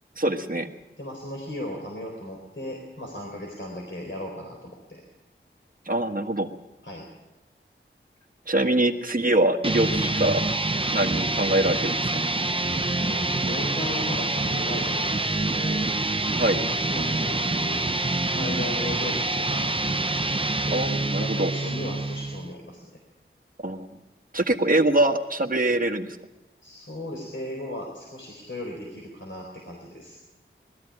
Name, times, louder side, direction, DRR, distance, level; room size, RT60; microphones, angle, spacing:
voice 1, 0.2-0.7 5.8-6.5 8.5-10.4 10.9-12.1 16.3-16.6 20.7-21.5 23.6-23.9 24.3-26.2, right 1 dB, 40° right, 3 dB, 1.4 m, -23 dB
voice 2, 1.0-5.0 6.8-7.1 13.0-15.9 16.7-19.7 20.5-22.8 26.6-30.2, left 1 dB, 65° left, -1 dB, 3.9 m, -36 dB
sound 1, 9.6-22.5, right 2 dB, 25° right, 0.6 m, -26 dB
20.0 x 13.5 x 9.9 m, 1.1 s
wide cardioid pair, 45°, 21 cm